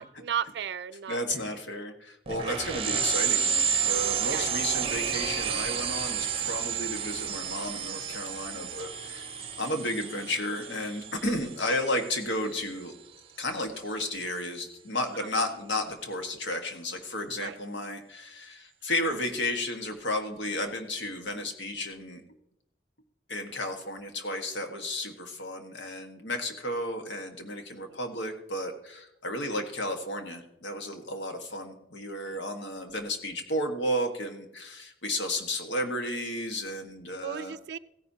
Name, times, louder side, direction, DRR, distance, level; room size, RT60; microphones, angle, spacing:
voice 1, 0.0-1.5 2.5-2.6 4.3-4.8 11.7-12.1 15.2-15.3 17.4-17.6 27.8-28.0 32.3-32.4 37.2-37.8, right 8 dB, 65° right, 15 dB, 0.3 m, -36 dB
voice 2, 1.1-9.3 9.6-12.9 13.4-22.2 23.3-37.5, left 1 dB, 80° left, 4 dB, 1.5 m, -33 dB
sound 1, 2.3-12.4, right 7 dB, 30° right, 0.7 m, -31 dB
16.0 x 10.0 x 2.8 m, 0.83 s
head